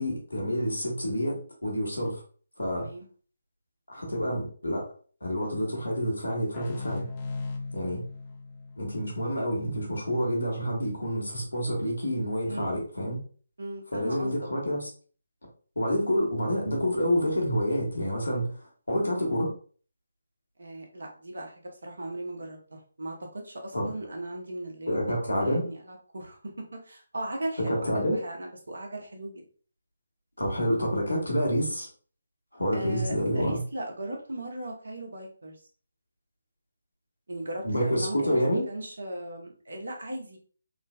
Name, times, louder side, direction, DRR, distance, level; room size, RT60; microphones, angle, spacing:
voice 1, 0.0-2.2 2.6-2.9 3.9-4.9 5.2-7.0 7.7-8.0 8.8-13.2 13.9-14.9 15.8-18.5 18.9-19.5 23.7-23.9 24.9-25.6 27.6-28.2 30.4-31.9 32.5-33.6 37.6-38.6, equal, 85° left, -1 dB, 1.3 m, -28 dB
voice 2, 2.7-3.1 12.5-12.8 13.6-14.3 14.6-14.8 20.6-21.5 21.8-25.2 25.4-29.4 32.7-35.5 37.3-40.4, right 1 dB, 70° right, 1 dB, 0.9 m, -37 dB
sound 1, 6.5-10.0, left 3 dB, 30° left, 0.4 m, -38 dB
3.7 x 2.1 x 2.3 m, 0.42 s
figure-of-eight pair, 150°, 0 cm